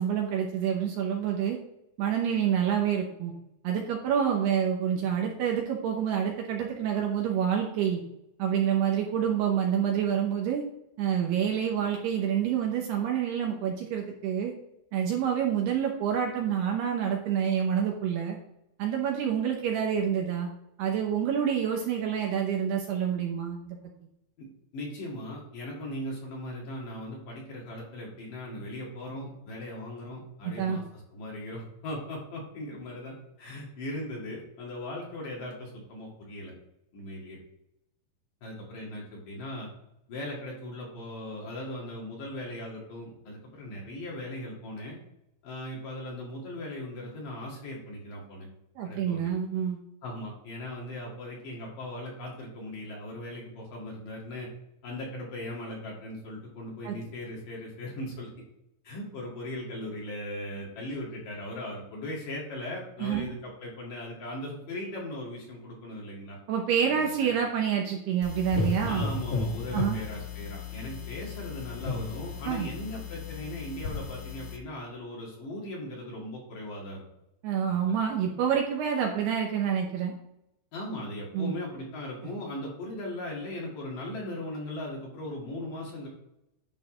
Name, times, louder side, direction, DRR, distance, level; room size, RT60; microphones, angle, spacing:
voice 1, 0.0-1.6 2.0-3.3 3.6-8.0 8.4-10.6 11.0-14.5 14.9-18.4 18.8-20.5 20.8-23.8 30.4-30.8 48.8-49.8 56.8-57.0 63.0-63.3 66.5-69.1 69.7-70.0 72.4-72.7 77.4-80.1 81.3-81.5, right 8 dB, 75° right, 0 dB, 2.6 m, -27 dB
voice 2, 24.7-30.8 31.1-36.5 36.9-37.4 38.4-39.7 40.1-45.0 45.4-48.5 48.8-49.3 50.0-54.5 54.8-58.3 58.8-66.4 66.8-67.3 68.8-77.0 77.7-77.8 80.7-86.1, left 1 dB, 55° left, -3 dB, 3.0 m, -38 dB
sound 1, 68.2-74.6, left 4 dB, 90° left, 1.6 m, -34 dB
11.0 x 4.0 x 5.1 m, 0.83 s
omnidirectional pair, 5.5 m